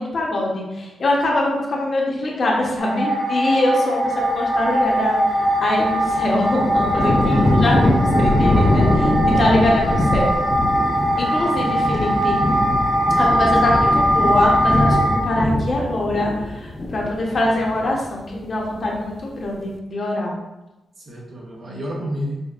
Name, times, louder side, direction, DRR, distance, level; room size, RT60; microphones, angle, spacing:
voice 1, 0.0-7.9 8.2-10.4 11.2-12.4 13.2-20.3, left 1 dB, 45° left, -2 dB, 0.8 m, -23 dB
sound 1, 2.8-15.2, right 1 dB, 15° right, 0.9 m, -21 dB
sound 2, 5.3-18.1 18.4-19.1, left 1 dB, 25° left, 0.4 m, -22 dB
voice 2, 7.2-7.6 13.6-13.7 21.0-22.4, left 1 dB, 50° right, -2 dB, 0.7 m, -29 dB
5.0 x 2.2 x 2.4 m, 0.98 s
cardioid pair, 120°, 0 cm